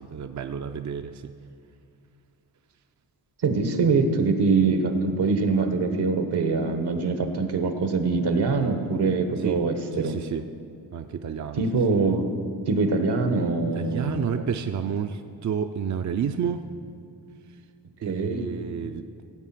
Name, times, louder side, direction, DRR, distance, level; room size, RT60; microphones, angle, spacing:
voice 1, 0.0-1.3 9.4-9.6 9.9-10.4 10.9-11.6 13.7-16.7 18.0-19.1, right 7 dB, 45° right, 7 dB, 0.5 m, -30 dB
voice 2, 3.4-10.2 11.5-12.3 12.7-14.4 18.1-18.4, right 4 dB, 75° right, 7 dB, 1.3 m, -23 dB
16.5 x 7.7 x 5.9 m, 2.4 s
cardioid pair, 90°, 40 cm